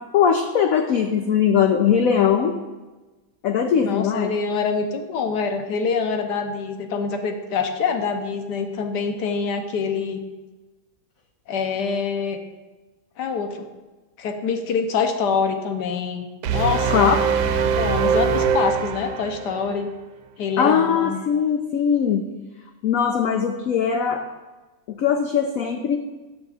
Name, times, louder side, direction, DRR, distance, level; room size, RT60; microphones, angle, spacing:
voice 1, 0.1-2.6 3.4-4.3 16.9-17.2 20.6-22.2 22.8-24.2 24.9-26.0, left 7 dB, 85° left, 5 dB, 0.7 m, -20 dB
voice 2, 3.8-10.2 11.5-12.4 13.2-13.7 14.2-17.1 17.8-19.9 20.4-21.2, left 5 dB, 70° left, 6 dB, 1.2 m, -25 dB
sound 1, 16.4-19.6, right 6 dB, 85° right, 1.3 m, -22 dB
12.5 x 6.8 x 2.4 m, 1.2 s
omnidirectional pair, 2.0 m